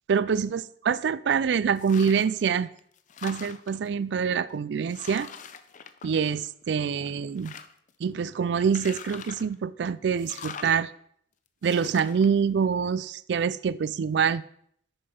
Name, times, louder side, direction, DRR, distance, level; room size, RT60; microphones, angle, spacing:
voice 1, 0.1-2.7 3.2-5.3 6.0-7.5 8.0-10.9 11.6-14.4, right 6 dB, 65° right, 18 dB, 0.3 m, -25 dB
sound 1, 1.8-2.4 2.8-3.9 4.5-4.6 4.9-6.6 7.0-7.9 8.6-9.5 10.2-10.8 11.6-12.3, left 7 dB, 45° left, 0.5 m, -43 dB
6.5 x 6.0 x 5.2 m, 0.65 s
head